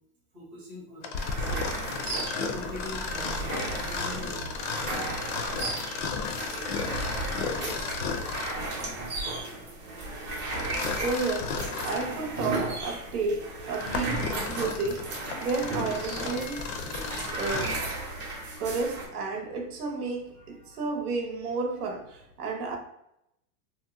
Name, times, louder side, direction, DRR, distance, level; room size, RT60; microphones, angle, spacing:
voice 1, 0.3-1.7 2.0-5.1 15.3-15.5 17.9-18.0 20.4-20.9, left 1 dB, 5° right, 0.3 m, -45 dB
Mechanisms, 1.0-8.7 10.5-12.1 12.7-12.8 13.5-17.9, left 5 dB, 50° left, 0.5 m, -34 dB
sound 1, 1.1-19.1, right 2 dB, 25° right, 0.7 m, -35 dB
voice 2, 10.5-17.8 18.6-22.8, right 3 dB, 90° right, 0.9 m, -32 dB
2.7 x 2.1 x 3.4 m
supercardioid pair, 155°, 43 cm